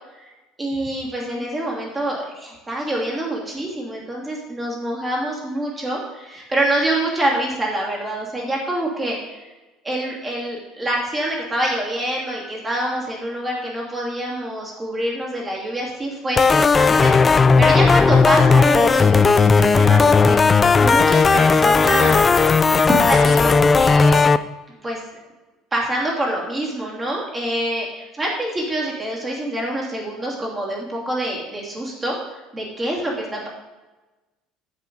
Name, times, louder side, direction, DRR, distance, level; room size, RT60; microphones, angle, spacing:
voice 1, 0.6-9.5 9.8-22.2 22.7-24.2 24.8-25.0 25.7-27.9 28.2-32.1 32.5-33.5, right 1 dB, 15° right, -3 dB, 2.8 m, -26 dB
sound 1, 16.4-24.4, left 4 dB, 20° left, 0.3 m, -15 dB
10.5 x 7.5 x 4.0 m, 1.1 s
cardioid pair, 140°, 0 cm